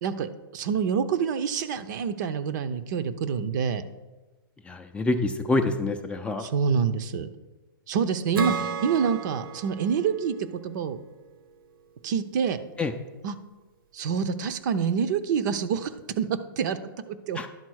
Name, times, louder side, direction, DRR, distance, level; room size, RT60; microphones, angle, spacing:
voice 1, 0.0-3.8 6.4-7.3 7.9-10.4 10.6-11.0 12.0-12.6 13.2-13.4 13.9-15.9 16.2-16.8 17.1-17.4, right 6 dB, 55° right, 11 dB, 0.7 m, -27 dB
voice 2, 4.7-6.5 12.8-12.9 17.4-17.5, left 2 dB, 10° left, 5 dB, 0.4 m, -26 dB
Acoustic guitar / Strum, 8.4-11.8, right 6 dB, 70° right, 1.0 m, -34 dB
11.0 x 4.0 x 6.3 m, 1.2 s
hypercardioid pair, 135°, 12 cm